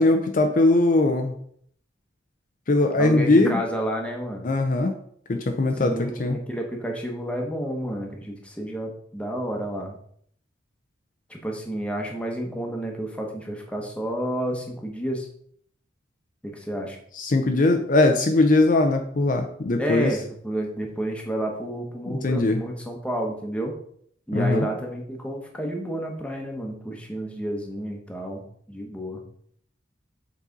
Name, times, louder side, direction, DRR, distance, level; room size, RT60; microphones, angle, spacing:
voice 1, 0.0-1.4 2.7-3.6 4.4-4.9 5.3-6.4 17.1-20.1 22.1-22.6 24.3-24.7, left 2 dB, 45° left, 5 dB, 0.5 m, -20 dB
voice 2, 3.0-4.5 5.7-10.0 11.3-15.3 16.4-17.0 19.8-23.7 24.3-29.2, right 1 dB, 5° left, 1 dB, 1.0 m, -30 dB
7.2 x 4.2 x 3.9 m, 0.64 s
head